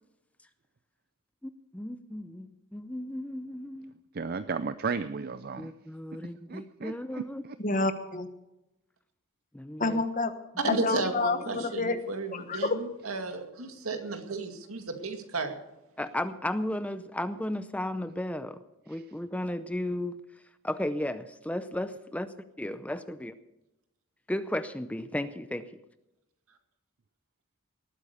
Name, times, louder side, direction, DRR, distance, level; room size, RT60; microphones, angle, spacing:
voice 1, 1.4-3.9 5.6-7.4 9.5-10.0 10.7-10.8 11.6-11.7 16.0-20.2 20.6-22.3 22.6-23.3 24.3-25.7, left 1 dB, 5° left, 11 dB, 0.6 m, -34 dB
voice 2, 4.1-5.7 6.5-7.6 18.9-19.0, right 5 dB, 45° right, 12 dB, 0.5 m, -34 dB
voice 3, 7.6-8.3 9.8-10.3 10.7-12.0 12.3-12.6, left 3 dB, 40° left, 9 dB, 1.2 m, -28 dB
voice 4, 10.6-15.6, right 3 dB, 85° right, 6 dB, 2.1 m, -33 dB
19.0 x 9.1 x 6.7 m, 0.93 s
head